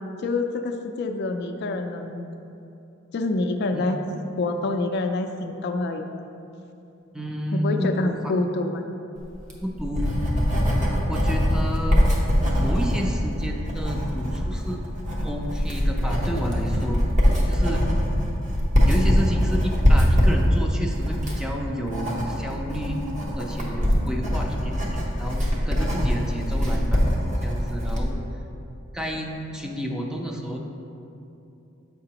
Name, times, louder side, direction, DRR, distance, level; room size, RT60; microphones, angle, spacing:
voice 1, 0.2-2.3 3.1-4.0 4.4-6.0 7.5-8.8, left 2 dB, 55° left, 5 dB, 0.4 m, -26 dB
voice 2, 7.1-8.3 9.6-10.1 11.1-12.1 12.6-14.8 15.2-17.0 17.5-17.8 18.9-23.0 23.3-27.0 27.4-28.2 28.9-30.6, equal, 5° right, 1 dB, 0.5 m, -30 dB
Writing, 9.3-28.1, equal, 40° right, 1.0 m, -23 dB
7.6 x 5.7 x 2.9 m, 2.7 s
head